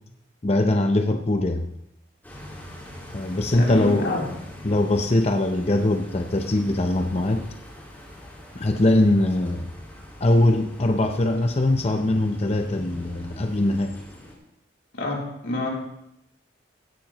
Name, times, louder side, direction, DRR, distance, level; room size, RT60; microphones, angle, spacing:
voice 1, 0.4-1.7 3.1-4.1 4.6-7.5 8.5-9.7 10.2-14.0, left 1 dB, 35° left, 5 dB, 0.7 m, -22 dB
sound 1, 2.2-14.4, left 1 dB, 10° left, 4.8 m, -42 dB
voice 2, 3.5-4.2 14.9-15.7, left 1 dB, 90° left, -3 dB, 3.6 m, -27 dB
16.0 x 12.0 x 3.1 m, 0.82 s
head